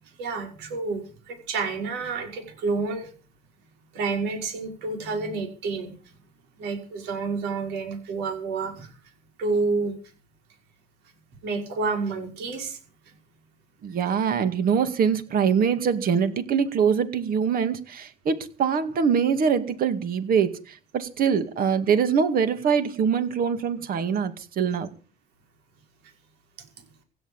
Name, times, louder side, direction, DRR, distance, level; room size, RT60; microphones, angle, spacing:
voice 1, 0.0-3.1 3.9-5.9 6.6-9.0 9.4-9.9 11.4-12.8 13.1-13.2, right 4 dB, 90° right, 5.6 m, -29 dB
voice 2, 13.8-24.9, right 6 dB, 60° right, 2.2 m, -23 dB
16.5 x 9.6 x 7.2 m
cardioid pair, 110°, 17 cm